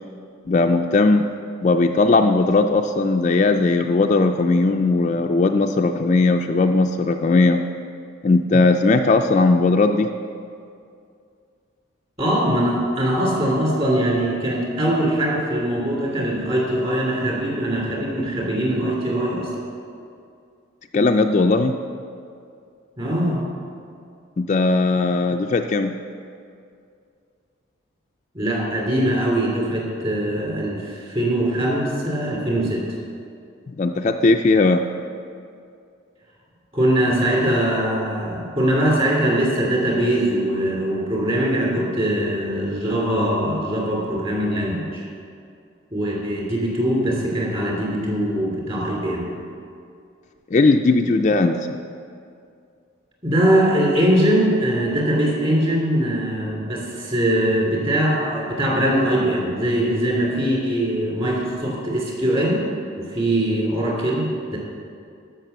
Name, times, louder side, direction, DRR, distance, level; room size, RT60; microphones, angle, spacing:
voice 1, 0.5-1.3 1.6-7.6 8.2-10.1 20.9-21.8 24.4-25.9 33.8-34.8 50.5-51.8, left 3 dB, 35° left, 5 dB, 0.3 m, -18 dB
voice 2, 12.2-19.5 23.0-23.4 28.3-32.8 36.7-45.0 45.9-49.3 53.2-62.6 63.0-64.6, right 1 dB, 30° right, -3 dB, 3.0 m, -22 dB
13.5 x 6.0 x 6.8 m, 2.4 s
head